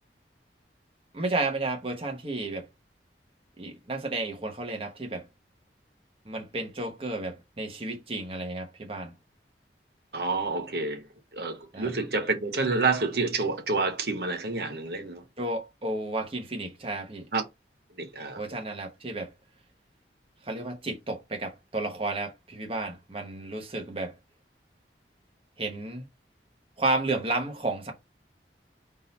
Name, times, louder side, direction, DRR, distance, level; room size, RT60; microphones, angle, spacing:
voice 1, 1.1-2.7 3.6-5.3 6.2-9.1 11.7-11.9 15.4-17.3 18.4-19.3 20.4-24.1 25.6-26.1 26.8-27.9, right 2 dB, 30° right, 1.0 m, -32 dB
voice 2, 10.1-11.1 11.3-15.2 17.3-17.4 18.0-18.4, right 3 dB, 60° right, 1.0 m, -28 dB
3.8 x 2.7 x 4.2 m
head